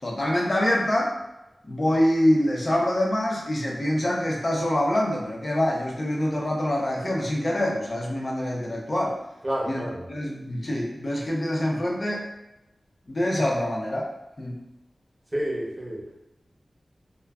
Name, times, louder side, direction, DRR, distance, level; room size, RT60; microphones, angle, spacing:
voice 1, 0.0-1.1 1.6-9.2 9.7-12.3 13.1-14.1 14.4-14.6, left 1 dB, 40° left, -2 dB, 0.6 m, -25 dB
voice 2, 9.4-10.0 15.3-16.2, right 1 dB, 25° right, -3 dB, 0.7 m, -29 dB
2.3 x 2.1 x 3.4 m, 0.93 s
wide cardioid pair, 95°, 0 cm